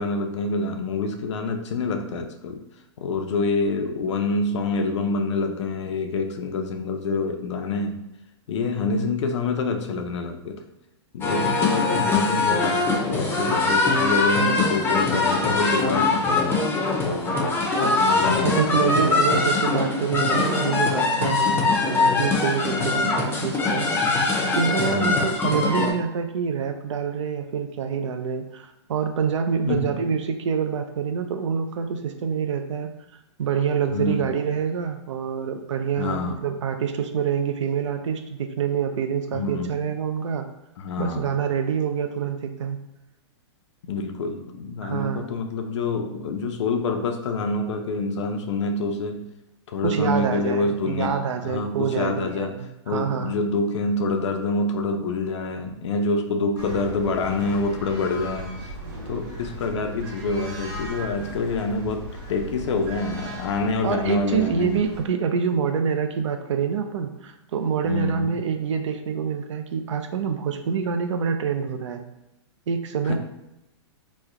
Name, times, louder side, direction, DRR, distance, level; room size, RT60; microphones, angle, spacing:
voice 1, 0.0-2.6 3.0-8.0 8.5-10.6 11.1-16.6 18.0-18.8 24.9-25.4 29.7-29.9 33.9-34.3 36.0-36.4 39.3-39.8 40.8-41.3 43.9-49.3 49.7-52.6 52.9-58.7 59.1-64.8 67.8-68.3 73.1-73.2, left 3 dB, 75° left, 5 dB, 0.5 m, -26 dB
sound 1, 11.2-25.9, left 3 dB, 15° left, 0.5 m, -22 dB
voice 2, 18.3-23.9 24.5-32.9 33.4-40.5 41.0-42.8 44.8-45.3 49.8-53.3 63.8-72.0 72.7-73.2, right 7 dB, 85° right, 6 dB, 0.5 m, -26 dB
sound 2, 56.6-65.1, equal, 45° right, 1.3 m, -37 dB
3.1 x 2.1 x 3.6 m, 0.93 s
hypercardioid pair, 140°, 15 cm